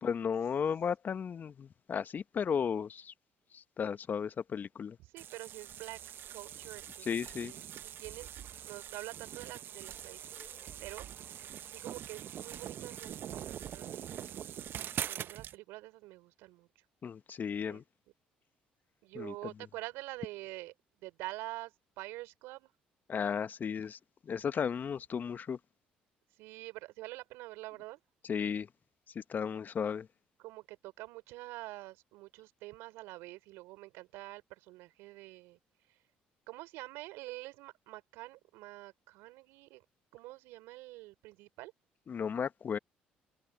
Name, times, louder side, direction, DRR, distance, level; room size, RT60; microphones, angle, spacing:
voice 1, 0.0-3.1 3.5-5.0 7.0-7.5 10.4-10.5 17.0-17.8 19.1-19.5 23.1-24.0 24.2-25.6 28.2-28.7 29.1-30.1 42.1-42.8, left 7 dB, 45° left, 1.0 m, -34 dB
voice 2, 5.0-6.0 6.3-7.6 8.0-8.3 8.6-10.5 10.8-14.1 15.1-16.7 17.7-17.8 19.0-20.7 21.0-22.7 26.4-28.0 30.4-35.6 36.5-39.8 40.1-41.7, right 20 dB, 75° right, 4.1 m, -46 dB
sound 1, 5.2-15.6, right 10 dB, 60° right, 0.9 m, -43 dB
hypercardioid pair, 55°, 4 cm